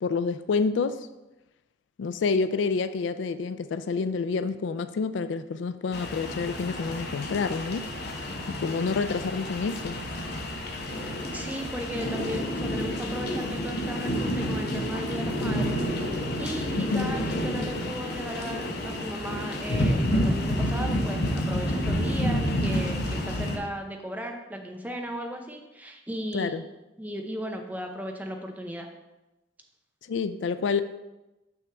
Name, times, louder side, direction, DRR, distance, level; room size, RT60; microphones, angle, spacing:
voice 1, 0.0-1.0 2.0-7.9 8.5-10.0 16.7-17.1 26.3-26.6 30.1-30.8, left 4 dB, 80° left, 12 dB, 0.4 m, -28 dB
sound 1, 5.9-23.6, equal, 60° left, 0.8 m, -29 dB
voice 2, 11.3-15.8 16.4-26.6 27.0-28.9, equal, 10° right, 3 dB, 0.6 m, -36 dB
6.3 x 6.1 x 3.4 m, 1.0 s
head